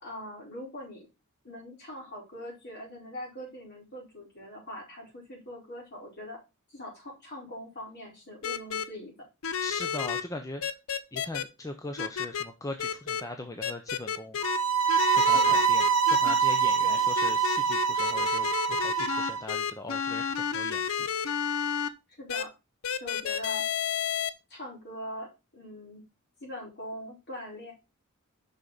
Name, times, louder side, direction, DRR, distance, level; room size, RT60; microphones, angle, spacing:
voice 1, 0.0-1.1 1.4-6.4 6.7-9.1 15.2-15.7 16.8-17.0 22.2-22.5 23.0-23.6 24.5-26.0 26.4-27.7, left 1 dB, 50° left, -3 dB, 4.3 m, -42 dB
sound 1, 8.4-8.8 9.4-10.2 10.6-11.4 12.0-12.4 12.8-13.2 13.6-14.6 14.9-16.3 17.2-21.9 22.3-22.4 22.8-24.3, left 7 dB, 65° left, 0.6 m, -31 dB
voice 2, 9.6-10.6 11.1-14.4 15.0-21.1, left 2 dB, 15° left, 5 dB, 0.6 m, -40 dB
sound 2, 14.4-19.4, right 6 dB, 70° right, 1.0 m, -25 dB
6.2 x 5.8 x 3.9 m, 0.26 s
head